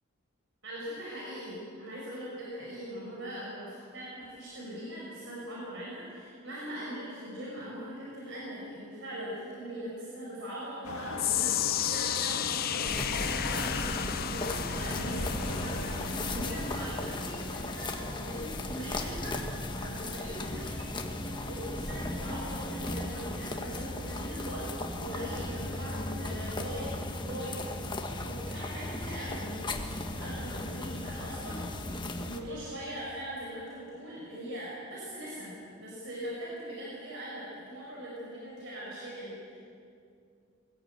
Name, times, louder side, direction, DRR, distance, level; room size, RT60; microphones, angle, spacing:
voice 1, 0.6-21.0 21.3-31.6 31.9-39.6, equal, 60° right, -5 dB, 5.2 m, -41 dB
sound 1, 10.8-16.6, left 3 dB, 90° left, 1.5 m, -39 dB
sound 2, 11.2-23.5 23.8-24.2 24.8-24.9, left 12 dB, 45° left, 0.5 m, -36 dB
sound 3, 12.9-32.4, left 1 dB, 20° left, 1.3 m, -36 dB
21.0 x 15.5 x 8.9 m, 2.4 s
head